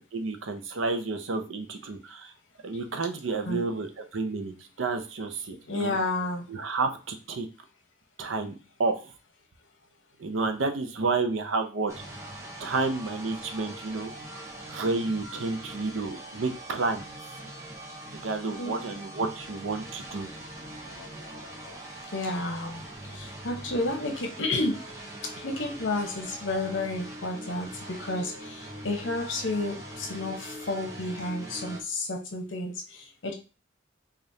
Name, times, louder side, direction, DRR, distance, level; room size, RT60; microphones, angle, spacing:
voice 1, 0.1-2.3 2.6-6.0 6.5-7.5 8.2-8.5 8.8-9.1 10.2-11.9 12.6-17.0 18.2-20.3, right 3 dB, 75° right, 7 dB, 0.6 m, -30 dB
voice 2, 5.7-6.5 18.6-18.7 22.1-22.8 23.1-24.8 25.4-33.3, left 2 dB, 65° left, 3 dB, 0.9 m, -31 dB
sound 1, 11.9-31.8, right 1 dB, 15° right, 0.8 m, -42 dB
5.0 x 2.5 x 2.7 m, 0.33 s
head